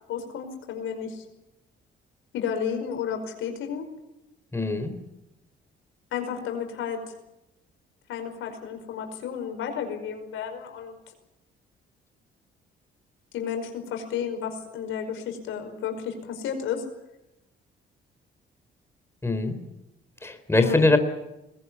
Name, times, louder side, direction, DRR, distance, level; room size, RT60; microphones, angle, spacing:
voice 1, 0.1-1.2 2.3-3.8 6.1-7.0 8.1-10.9 13.3-16.8 20.6-20.8, left 7 dB, 85° left, 5 dB, 5.3 m, -32 dB
voice 2, 4.5-4.9 19.2-19.6 20.2-21.0, left 2 dB, 10° left, 9 dB, 3.7 m, -22 dB
22.0 x 20.5 x 9.7 m, 0.92 s
cardioid pair, 90°, 20 cm